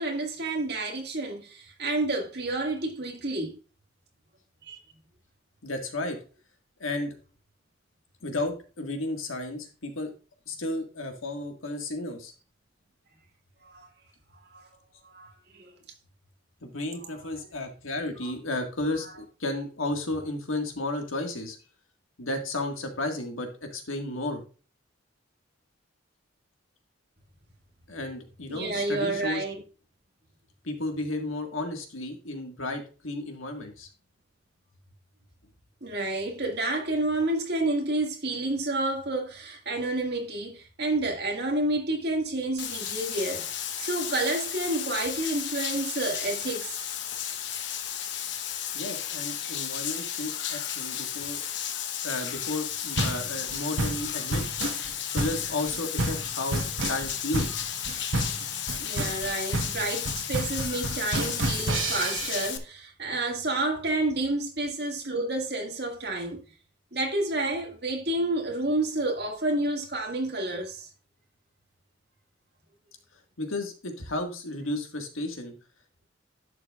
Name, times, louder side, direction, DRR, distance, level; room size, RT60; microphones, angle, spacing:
voice 1, 0.0-3.6 4.6-4.8 13.6-13.9 14.5-14.7 15.0-15.8 17.0-17.1 18.2-18.3 19.0-19.1 28.5-29.6 35.8-46.8 58.8-66.4 66.9-70.9, right 2 dB, 55° right, 2.1 m, -30 dB
voice 2, 5.6-6.2 6.8-7.2 8.2-10.1 10.5-12.3 16.6-21.6 22.2-24.4 27.9-29.4 30.6-33.9 48.7-51.4 52.0-54.4 55.1-57.6 73.4-75.5, left 2 dB, 90° left, 1.8 m, -33 dB
Bathtub (filling or washing), 42.6-62.6, left 9 dB, 60° left, 0.9 m, -33 dB
sound 1, 53.0-62.5, right 2 dB, 80° right, 1.3 m, -30 dB
11.0 x 6.9 x 2.4 m
head